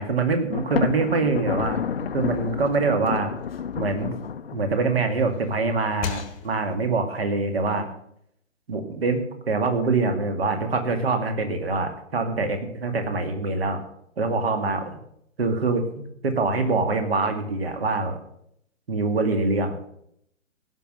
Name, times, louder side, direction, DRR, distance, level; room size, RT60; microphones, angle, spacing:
voice 1, 0.0-3.3 3.8-4.1 4.5-7.9 8.7-13.8 14.2-15.0 15.4-18.2 18.9-19.8, right 3 dB, 50° right, 7 dB, 2.3 m, -24 dB
Thunder, 0.5-5.1, left 7 dB, 50° left, 0.7 m, -30 dB
sound 1, 1.5-4.7 5.1-6.9, left 8 dB, 25° left, 1.1 m, -40 dB
16.5 x 6.0 x 7.8 m, 0.73 s
figure-of-eight pair, 135°, 39 cm